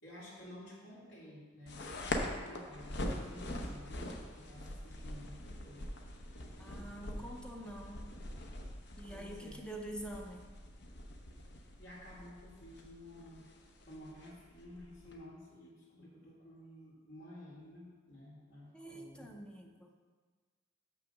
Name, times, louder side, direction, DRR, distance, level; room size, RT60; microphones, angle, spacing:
voice 1, 0.0-5.9 9.1-9.7 11.8-13.5 13.9-19.3, left 1 dB, 75° left, -8 dB, 2.4 m, -53 dB
sound 1, 1.7-15.1, left 1 dB, 60° left, 0.8 m, -43 dB
voice 2, 6.6-8.0 9.0-10.5 18.7-19.9, right 1 dB, 5° left, 1 dB, 0.6 m, -46 dB
6.1 x 5.6 x 6.5 m, 1.5 s
head